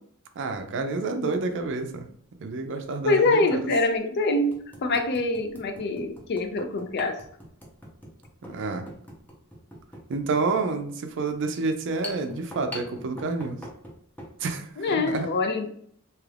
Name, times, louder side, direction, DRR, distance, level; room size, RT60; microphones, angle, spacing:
voice 1, 0.4-2.1 2.4-3.7 8.4-8.9 10.1-13.6 14.4-15.3, right 3 dB, 55° right, 6 dB, 0.4 m, -29 dB
sound 1, 1.7-1.8 3.2-3.3 3.9-4.0 4.5-14.4, left 1 dB, 10° left, 0.6 m, -44 dB
voice 2, 3.1-7.2 14.8-15.7, left 2 dB, 50° left, 7 dB, 0.4 m, -25 dB
2.9 x 2.4 x 3.2 m, 0.64 s
head